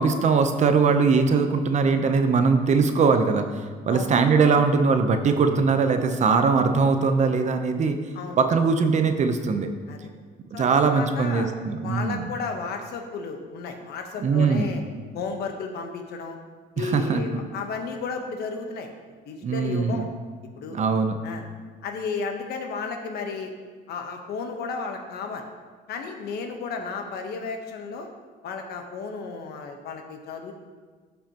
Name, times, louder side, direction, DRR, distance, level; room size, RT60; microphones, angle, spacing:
voice 1, 0.0-8.0 8.4-9.7 10.5-12.3 14.2-14.7 16.8-17.2 19.4-20.1 20.7-21.2, right 5 dB, 45° right, 7 dB, 0.8 m, -21 dB
voice 2, 10.5-11.5 11.8-14.8 15.1-16.4 16.7-18.9 19.2-20.1 20.5-20.8 21.2-21.4 21.8-23.5 23.9-25.4 25.9-28.1 28.4-30.5, left 4 dB, 70° left, 4 dB, 1.1 m, -33 dB
13.5 x 5.6 x 3.0 m, 1.5 s
cardioid pair, 110°, 17 cm